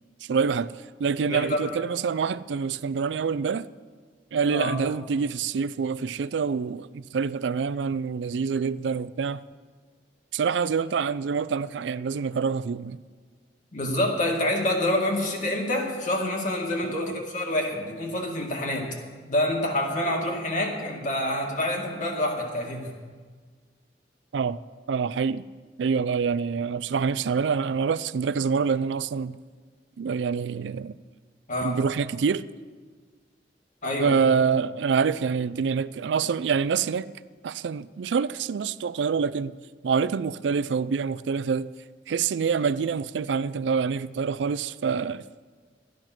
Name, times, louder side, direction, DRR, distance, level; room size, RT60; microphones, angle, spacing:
voice 1, 0.2-3.7 4.3-9.4 10.3-13.0 16.8-17.2 24.3-24.6 24.9-25.4 25.8-29.4 30.0-30.9 31.6-32.5 34.0-37.1 37.4-39.5 39.8-41.7 42.1-45.2, right 6 dB, 80° right, 0.4 m, -26 dB
voice 2, 1.3-1.6 4.5-4.8 13.7-19.0 19.3-22.9 31.5-31.8 33.8-34.2, left 1 dB, 45° left, 2.0 m, -27 dB
13.0 x 10.5 x 6.0 m
head